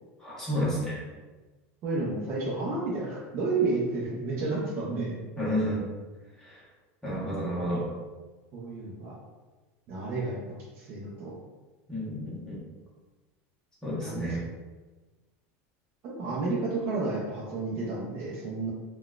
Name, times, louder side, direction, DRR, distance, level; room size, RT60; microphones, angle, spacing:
voice 1, 0.2-1.0 5.4-5.8 7.0-7.8 11.9-12.6 13.8-14.4, equal, 5° left, -8 dB, 1.0 m, -30 dB
voice 2, 1.8-5.2 7.6-7.7 8.5-9.1 9.9-11.3 13.9-14.4 16.0-18.7, right 3 dB, 35° right, -6 dB, 0.5 m, -31 dB
3.8 x 2.2 x 2.3 m, 1.2 s
supercardioid pair, 170°, 7 cm